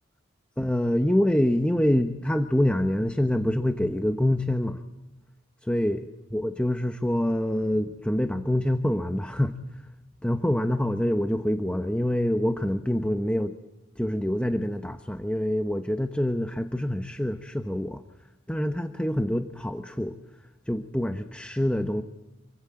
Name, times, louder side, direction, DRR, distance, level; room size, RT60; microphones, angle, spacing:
voice 1, 0.6-4.8 5.6-6.1 6.3-9.5 10.2-13.5 14.0-18.0 18.5-20.1 20.7-22.0, left 1 dB, 5° left, 7 dB, 1.0 m, -26 dB
28.5 x 23.5 x 8.8 m, 1.0 s
head